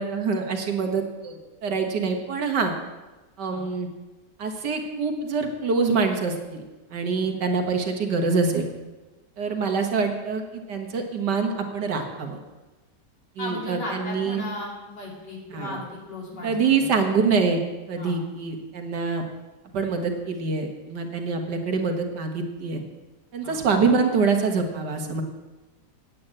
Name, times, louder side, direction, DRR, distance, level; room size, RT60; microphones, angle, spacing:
voice 1, 0.0-2.7 3.4-3.9 4.4-6.6 6.9-8.7 9.4-12.4 13.4-14.4 15.5-15.8 16.4-17.6 17.9-19.2 19.7-22.8 23.3-25.2, right 4 dB, 75° right, 4 dB, 2.0 m, -25 dB
voice 2, 13.4-17.0 18.0-18.2 23.4-23.6, left 1 dB, 75° left, -3 dB, 3.8 m, -36 dB
8.7 x 8.5 x 8.8 m, 1.2 s
omnidirectional pair, 1.8 m